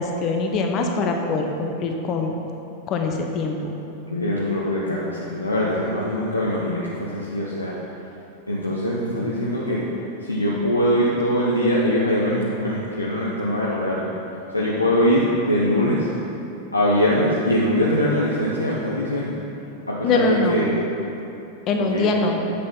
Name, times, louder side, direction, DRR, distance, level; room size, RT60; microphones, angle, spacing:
voice 1, 0.0-2.4 2.9-3.6 20.0-20.6 21.7-22.4, left 3 dB, 35° left, 3 dB, 1.1 m, -23 dB
voice 2, 4.1-7.8 8.5-9.8 10.2-14.1 14.5-16.1 16.7-19.4 19.9-20.8 21.8-22.1, equal, 85° left, -6 dB, 1.0 m, -22 dB
8.5 x 6.7 x 5.5 m, 2.9 s
figure-of-eight pair, 90°, 0 cm